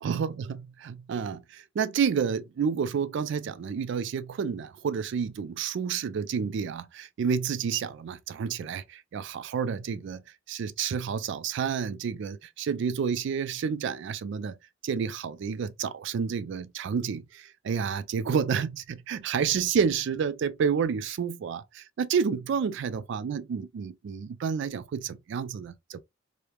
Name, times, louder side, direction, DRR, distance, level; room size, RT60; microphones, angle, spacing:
voice 1, 0.0-14.6 14.8-26.0, right 6 dB, 65° right, 0.3 m, -30 dB
3.1 x 2.1 x 2.2 m
head